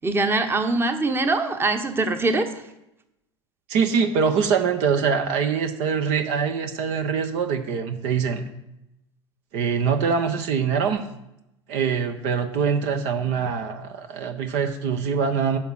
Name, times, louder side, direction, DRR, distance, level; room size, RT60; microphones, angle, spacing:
voice 1, 0.0-2.6, right 2 dB, 15° right, 7 dB, 1.2 m, -23 dB
voice 2, 3.7-8.5 9.5-11.1 11.7-15.6, right 6 dB, 50° right, 7 dB, 1.1 m, -23 dB
10.5 x 5.9 x 6.5 m, 0.88 s
figure-of-eight pair, 75°, 15 cm